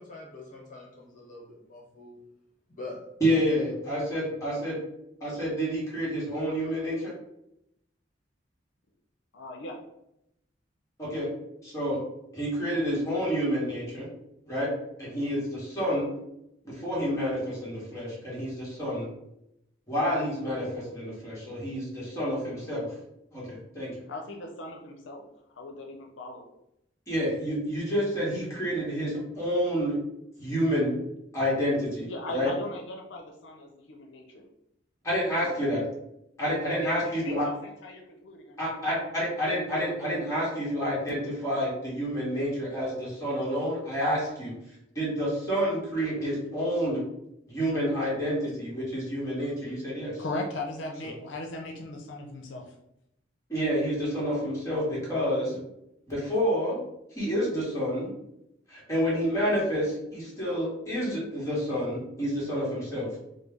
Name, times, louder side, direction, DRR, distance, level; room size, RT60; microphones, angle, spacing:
voice 1, 0.0-2.2 2.7-3.0 3.3-3.5, left 2 dB, 45° left, -3 dB, 0.9 m, -44 dB
voice 2, 3.2-4.8 5.2-7.1 11.0-11.3 11.6-12.0 12.3-14.1 14.5-14.7 15.0-16.1 16.6-19.1 19.9-22.9 23.3-23.9 27.1-30.0 30.4-30.9 31.3-32.5 35.0-35.8 36.4-37.5 38.6-44.5 44.9-47.0 47.5-50.2 53.5-55.6 56.1-56.8 57.1-58.1 58.7-63.1, equal, 15° left, -7 dB, 1.5 m, -29 dB
voice 3, 9.3-9.8 24.1-25.2 25.6-26.4 31.8-34.4 35.4-35.7 36.7-38.8 50.2-52.6, left 1 dB, 90° left, 1 dB, 0.5 m, -38 dB
3.1 x 2.2 x 3.5 m, 0.82 s
head